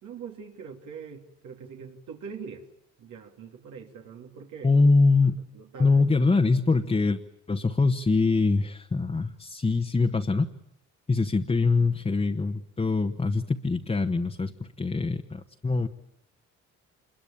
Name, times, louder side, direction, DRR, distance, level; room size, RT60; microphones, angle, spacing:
voice 1, 0.0-2.6 3.0-4.9 5.5-6.0, right 6 dB, 80° right, 1 dB, 3.2 m, -43 dB
voice 2, 4.6-5.4 5.8-7.2 7.5-10.5 11.1-15.9, left 3 dB, 20° left, 4 dB, 1.2 m, -23 dB
26.5 x 22.0 x 8.9 m, 0.73 s
cardioid pair, 90°, 30 cm